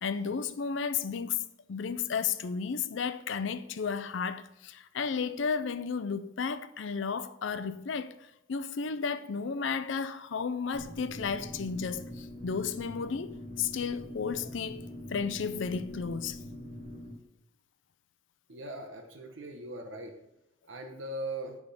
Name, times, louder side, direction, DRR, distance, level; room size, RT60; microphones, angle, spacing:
voice 1, 0.0-1.4 1.7-8.1 8.5-16.4, left 6 dB, 70° left, 0.5 m, -33 dB
sound 1, 10.7-17.1, left 1 dB, 35° right, 1.0 m, -43 dB
voice 2, 18.5-20.1 20.7-21.6, right 1 dB, 70° right, 1.0 m, -39 dB
9.0 x 3.6 x 5.3 m
head